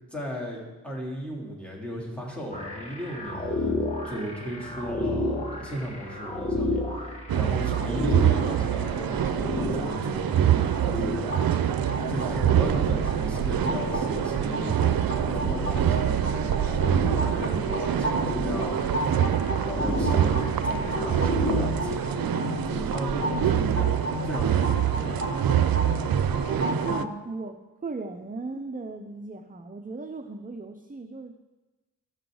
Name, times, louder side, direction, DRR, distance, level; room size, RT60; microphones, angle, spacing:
voice 1, 0.1-3.8 4.0-11.3 12.1-19.1 19.6-25.2, equal, 5° left, -3 dB, 3.2 m, -36 dB
sound 1, 2.5-21.7, left 1 dB, 20° left, 2.0 m, -33 dB
sound 2, 7.3-27.0, right 10 dB, 85° right, 0.5 m, -25 dB
sound 3, 11.3-27.1, left 1 dB, 80° left, 2.4 m, -34 dB
voice 2, 26.5-31.3, right 3 dB, 25° right, 6 dB, 0.6 m, -37 dB
15.0 x 6.3 x 3.9 m, 1.2 s
wide cardioid pair, 70°, 34 cm